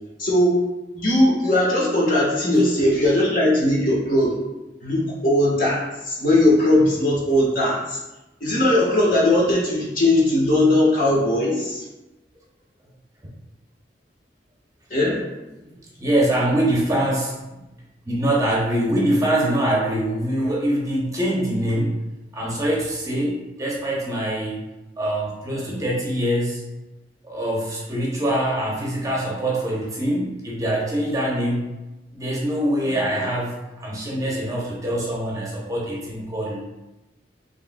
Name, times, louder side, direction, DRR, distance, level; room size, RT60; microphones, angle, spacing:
voice 1, 0.2-0.6 0.9-4.3 4.8-8.0 8.4-11.8 14.9-15.2, left 1 dB, 50° left, -5 dB, 1.2 m, -19 dB
voice 2, 15.6-17.4 18.1-22.0 22.3-24.6 25.0-26.8 27.2-31.8 32.1-36.6, right 1 dB, 20° right, -4 dB, 0.7 m, -24 dB
4.8 x 3.2 x 2.2 m, 1.0 s
head